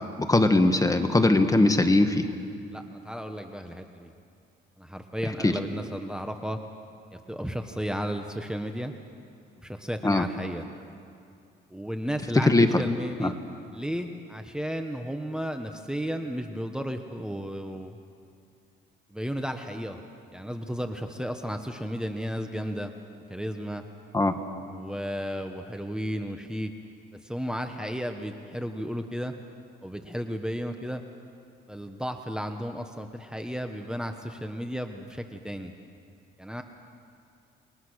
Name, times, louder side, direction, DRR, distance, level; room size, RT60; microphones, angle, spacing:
voice 1, 0.3-2.3 5.4-5.5 10.0-10.2 12.5-12.8 13.2-13.3 24.1-24.3, left 2 dB, 15° left, 7 dB, 1.6 m, -20 dB
voice 2, 2.7-4.1 4.8-6.6 7.1-8.9 9.6-10.7 11.7-13.4 13.7-18.0 19.1-20.0 20.3-22.9 23.3-23.8 24.6-26.7 27.2-29.3 29.8-31.0 31.7-35.7 36.4-36.6, equal, 5° right, 5 dB, 1.3 m, -33 dB
29.0 x 21.5 x 6.5 m, 2.4 s
cardioid pair, 90°, 20 cm